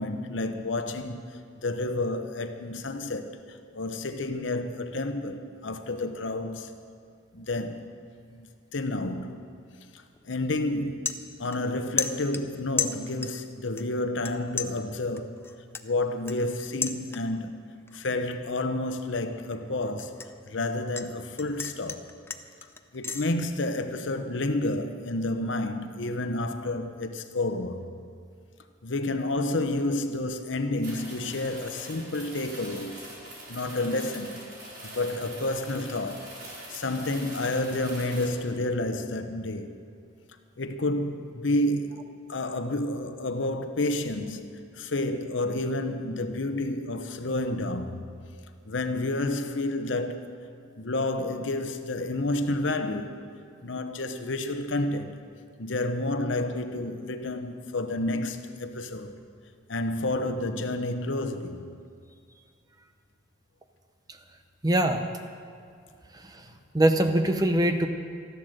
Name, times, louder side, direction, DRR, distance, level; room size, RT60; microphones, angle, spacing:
voice 1, 0.0-3.4 3.7-6.7 7.3-7.9 8.3-9.6 9.9-11.1 11.4-15.4 15.8-22.1 22.9-27.8 28.8-33.0 33.5-34.4 34.8-36.4 36.7-39.7 40.6-42.0 42.3-44.4 44.8-48.0 48.7-50.4 50.8-53.2 53.6-55.2 55.6-59.2 59.7-61.6, left 2 dB, 75° left, 0.9 m, -30 dB
sound 1, 10.1-10.3 10.7-11.7 12.0-13.5 13.8-14.3 14.6-17.5 17.9-18.2 18.6-21.1 21.4-23.3, left 5 dB, 10° left, 0.4 m, -34 dB
sound 2, 30.8-38.3, right 1 dB, 50° right, 4.6 m, -43 dB
voice 2, 64.6-65.0 66.2-66.4 66.7-67.9, right 1 dB, 20° right, 0.7 m, -22 dB
13.5 x 11.5 x 6.6 m
head